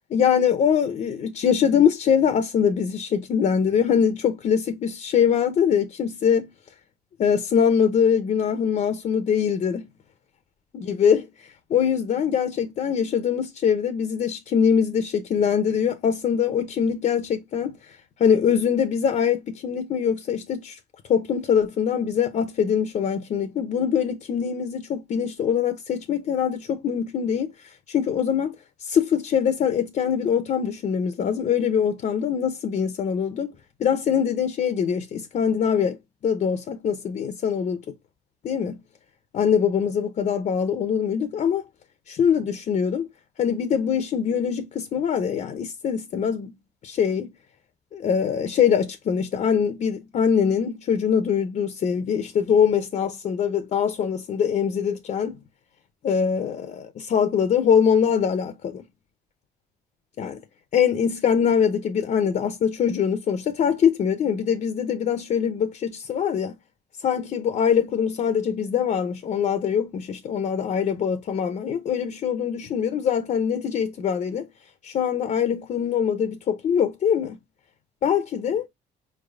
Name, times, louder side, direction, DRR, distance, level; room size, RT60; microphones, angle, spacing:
voice 1, 0.1-6.5 7.2-9.9 10.7-20.8 21.1-27.5 27.9-28.6 28.8-33.5 33.8-36.0 36.2-37.8 38.4-38.8 39.3-41.6 42.1-43.1 43.4-46.5 46.8-47.3 47.9-55.4 56.0-58.9 60.2-60.4 60.7-66.5 67.0-74.5 74.8-77.4 78.0-78.7, left 7 dB, 45° left, 0.6 m, -23 dB
4.5 x 3.3 x 2.4 m
cardioid pair, 110°, 17 cm